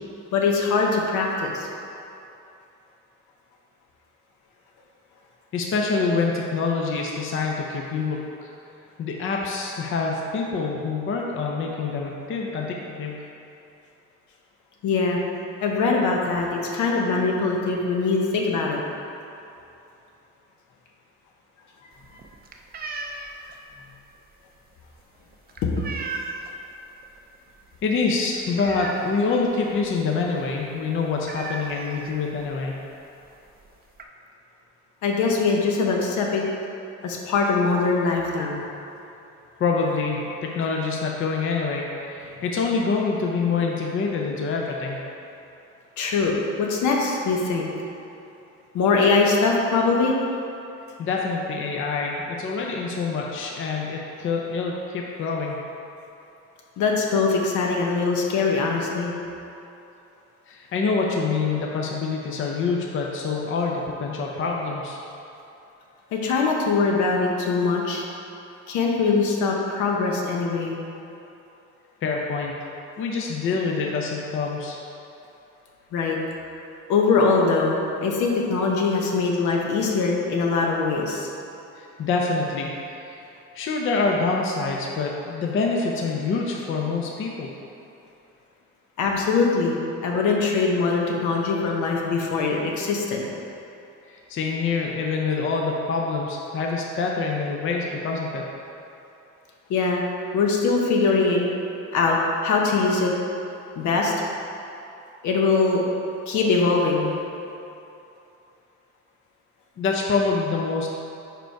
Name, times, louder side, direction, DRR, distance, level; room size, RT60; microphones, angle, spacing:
voice 1, 0.3-1.7 14.8-15.2 15.6-18.8 25.6-25.9 35.0-36.4 37.0-38.6 46.0-47.7 48.7-50.1 56.8-59.1 66.1-68.0 68.7-70.8 75.9-76.2 76.9-81.3 89.0-93.2 99.7-100.0 100.3-101.5 101.9-103.1 103.7-104.1 105.2-105.8 106.3-107.1, left 4 dB, 80° left, -1 dB, 0.9 m, -22 dB
voice 2, 5.5-8.5 9.0-13.3 27.8-32.8 39.6-45.0 51.0-55.6 60.5-65.0 72.0-72.5 73.0-74.8 81.8-83.2 83.5-87.5 94.1-98.5 109.8-110.9, left 4 dB, 45° left, -1 dB, 0.6 m, -26 dB
sound 1, 21.9-26.7 27.0-27.4 27.6-27.7 28.1-29.5 29.8-29.9 30.2-30.4 30.7-30.8 31.2-32.5 33.2-33.3 33.6-34.0, right 3 dB, 30° right, 0.5 m, -36 dB
5.1 x 4.6 x 4.5 m, 2.8 s
cardioid pair, 135°, 29 cm